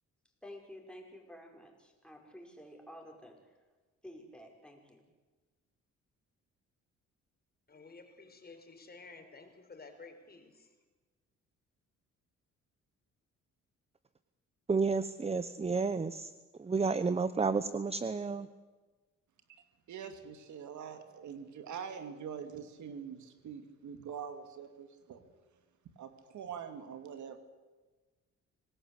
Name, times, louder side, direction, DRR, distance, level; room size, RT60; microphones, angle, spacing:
voice 1, 0.4-3.6 4.0-5.1, equal, 5° left, 1 dB, 5.7 m, -51 dB
voice 2, 7.7-10.7, left 3 dB, 30° left, 6 dB, 4.5 m, -53 dB
voice 3, 14.7-16.3 16.6-18.5, right 4 dB, 20° right, 13 dB, 0.9 m, -31 dB
voice 4, 19.9-25.2 26.0-27.4, right 7 dB, 70° right, 8 dB, 2.7 m, -44 dB
26.0 x 18.5 x 8.3 m, 1.3 s
cardioid pair, 90°, 30 cm